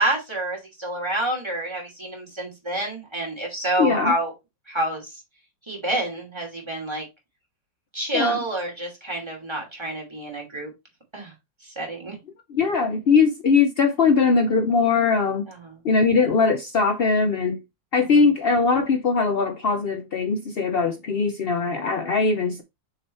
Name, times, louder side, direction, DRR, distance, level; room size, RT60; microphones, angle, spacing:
voice 1, 0.0-4.3 4.7-5.2 5.7-7.0 7.9-10.7 11.1-11.3 11.6-12.2 15.5-15.8 18.0-18.2, right 1 dB, 15° right, 2.5 m, -28 dB
voice 2, 3.8-4.1 8.1-8.4 12.5-15.5 15.8-17.6 17.9-22.6, left 4 dB, 75° left, 0.5 m, -21 dB
6.6 x 3.9 x 4.1 m
omnidirectional pair, 1.9 m